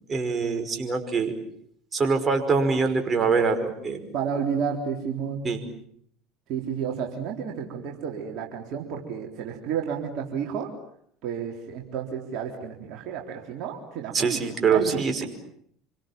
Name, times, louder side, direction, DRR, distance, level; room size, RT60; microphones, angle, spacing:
voice 1, 0.1-1.3 1.9-4.1 5.4-5.6 14.1-15.3, right 5 dB, 30° right, 5 dB, 5.4 m, -24 dB
voice 2, 4.1-5.5 6.5-10.7 11.2-14.4 14.7-15.2, right 7 dB, 60° right, 1 dB, 3.8 m, -31 dB
27.5 x 25.0 x 7.5 m, 0.67 s
hypercardioid pair, 70°, 0 cm